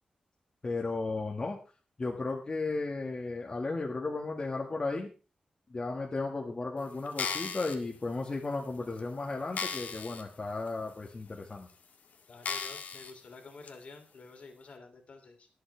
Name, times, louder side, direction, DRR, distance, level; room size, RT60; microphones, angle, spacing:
voice 1, 0.6-1.6 2.0-5.1 5.7-11.7, left 3 dB, 35° left, 0 dB, 1.9 m, -34 dB
sound 1, 7.0-7.7 8.4-8.5 9.0-9.1 9.5-10.2 10.7-10.8 11.5-11.6 12.4-13.1 13.7-13.8, left 6 dB, 85° left, 1.8 m, -36 dB
voice 2, 12.3-15.5, left 3 dB, 55° left, 4 dB, 3.1 m, -50 dB
22.5 x 7.9 x 3.4 m, 0.35 s
wide cardioid pair, 135°, 3 cm